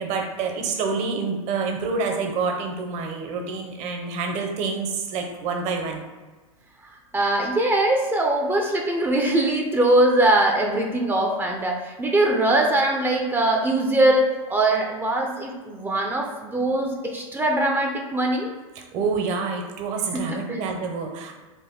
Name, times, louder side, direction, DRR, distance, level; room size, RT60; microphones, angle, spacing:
voice 1, 0.0-6.0 18.7-21.3, right 4 dB, 40° right, 3 dB, 0.8 m, -27 dB
voice 2, 7.1-18.5 20.1-20.6, right 1 dB, 10° right, 1 dB, 0.5 m, -22 dB
4.2 x 2.5 x 3.6 m, 1.3 s
hypercardioid pair, 105°, 18 cm